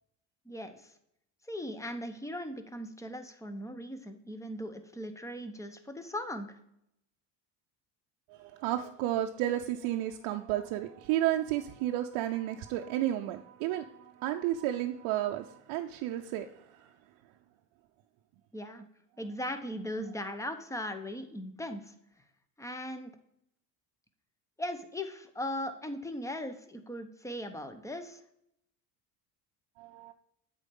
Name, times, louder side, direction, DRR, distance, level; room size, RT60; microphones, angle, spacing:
voice 1, 0.5-0.9 1.5-6.5 18.5-18.9 19.2-21.9 22.6-23.1 24.6-28.2, left 1 dB, 5° left, 8 dB, 0.9 m, -38 dB
voice 2, 8.3-16.9 29.8-30.1, right 13 dB, 75° right, 3 dB, 0.7 m, -32 dB
8.3 x 4.5 x 5.3 m, 0.76 s
supercardioid pair, 90°, 48 cm